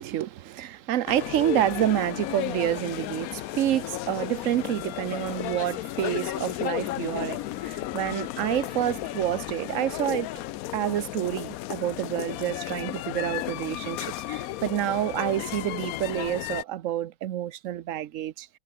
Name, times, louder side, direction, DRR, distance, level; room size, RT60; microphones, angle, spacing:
voice 1, 0.0-10.3 10.7-18.5, right 12 dB, 60° right, 0.9 m, -28 dB
sound 1, 1.1-16.6, left 15 dB, 70° left, 0.9 m, -34 dB
omnidirectional pair, 1.8 m